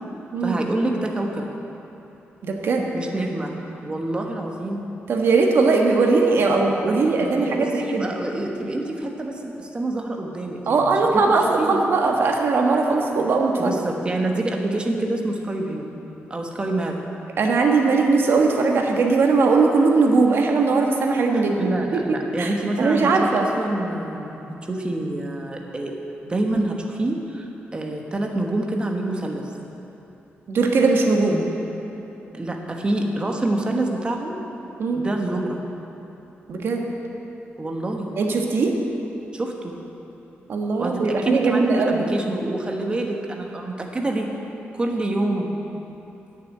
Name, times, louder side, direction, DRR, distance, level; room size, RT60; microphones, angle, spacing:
voice 1, 0.4-1.5 2.9-3.5 3.8-4.9 6.8-11.2 11.6-11.8 13.6-15.9 16.3-17.0 21.3-25.9 26.2-29.5 32.3-34.4 34.9-35.6 37.6-38.1 39.3-39.8 40.8-44.3 44.7-45.6, right 2 dB, 25° right, 1 dB, 1.2 m, -27 dB
voice 2, 2.4-2.9 5.1-8.1 10.7-13.8 17.4-21.7 22.4-22.5 22.8-23.5 30.5-31.4 34.8-35.0 36.5-36.8 38.2-38.7 40.5-42.1, right 3 dB, 65° right, 1 dB, 1.4 m, -19 dB
9.6 x 6.8 x 9.0 m, 3.0 s
wide cardioid pair, 125°, 4 cm